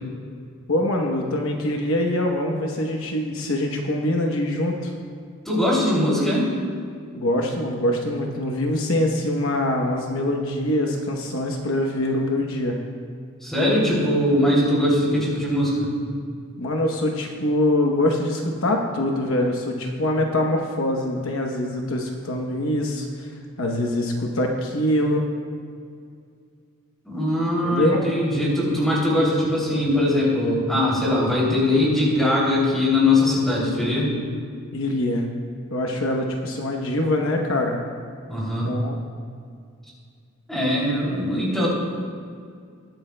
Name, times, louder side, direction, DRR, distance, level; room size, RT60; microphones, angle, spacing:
voice 1, 0.7-4.9 7.1-12.8 16.6-23.3 23.6-25.2 27.6-28.0 34.7-35.2 35.7-37.8 38.6-39.0, left 1 dB, 65° left, 1 dB, 1.0 m, -24 dB
voice 2, 5.4-6.5 13.4-15.9 27.0-34.1 38.3-38.7 40.5-41.7, left 1 dB, ahead, -6 dB, 2.8 m, -21 dB
20.0 x 9.0 x 2.2 m, 2.2 s
head